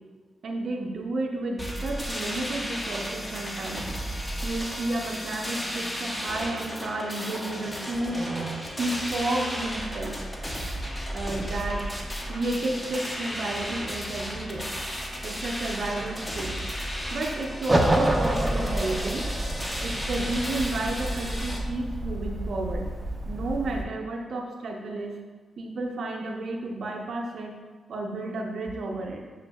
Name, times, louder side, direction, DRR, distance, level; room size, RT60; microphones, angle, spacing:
voice 1, 0.4-3.9 4.4-10.2 11.1-11.9 12.3-14.7 15.0-16.6 17.1-19.3 19.8-22.9 23.3-25.2 25.6-27.6 27.9-29.2, right 2 dB, 65° right, 1 dB, 0.6 m, -32 dB
sound 1, 1.6-21.6, equal, 20° left, 0.7 m, -34 dB
sound 2, 17.7-23.8, right 1 dB, 15° right, 0.5 m, -28 dB
6.9 x 2.5 x 2.2 m, 1.4 s
supercardioid pair, 50°, 0 cm